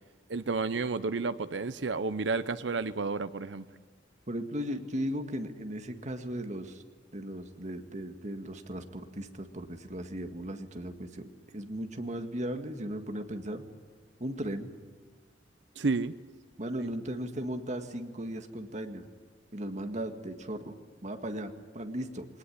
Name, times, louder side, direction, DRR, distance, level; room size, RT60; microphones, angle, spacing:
voice 1, 0.3-3.6 15.8-16.1, right 4 dB, 85° right, 0.7 m, -31 dB
voice 2, 4.3-6.8 7.1-13.6 14.2-14.7 16.6-19.0 19.5-20.7 21.0-22.3, right 1 dB, 40° right, 1.9 m, -37 dB
21.5 x 19.5 x 9.9 m
head